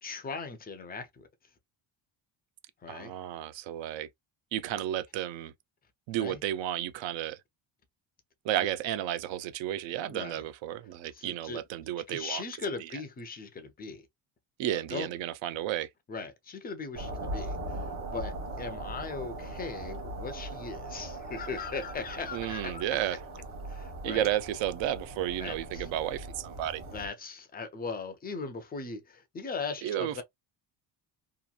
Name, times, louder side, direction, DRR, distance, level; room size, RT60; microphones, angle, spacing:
voice 1, 0.0-1.3 2.8-3.1 6.2-6.4 8.6-8.7 10.1-10.4 11.1-11.6 12.1-14.1 14.7-15.1 16.1-22.8 23.7-24.3 25.4-25.9 26.9-30.2, left 4 dB, 20° left, 0.4 m, -39 dB
voice 2, 2.9-4.1 4.5-5.5 6.1-7.4 8.4-12.4 14.6-15.9 22.3-23.2 24.0-26.8 29.8-30.2, right 12 dB, 70° right, 0.6 m, -32 dB
sound 1, 16.9-27.1, right 2 dB, 35° right, 1.0 m, -40 dB
2.9 x 2.4 x 2.3 m
cardioid pair, 175°, 47 cm